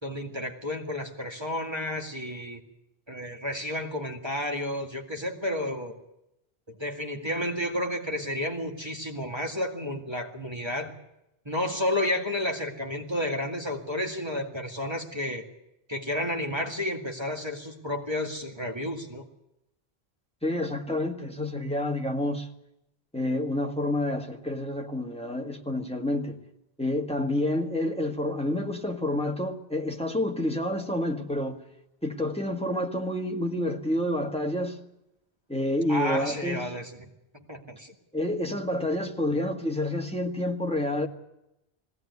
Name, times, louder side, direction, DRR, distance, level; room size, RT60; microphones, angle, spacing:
voice 1, 0.0-2.6 3.1-5.9 6.7-10.9 11.5-15.4 15.9-19.2 35.9-36.9 37.3-37.9, left 1 dB, 25° right, 2.2 m, -31 dB
voice 2, 20.4-22.5 23.1-26.4 26.8-31.6 32.0-34.8 35.5-36.6 38.1-41.1, left 1 dB, 5° left, 1.7 m, -28 dB
20.0 x 17.0 x 9.6 m
omnidirectional pair, 1.1 m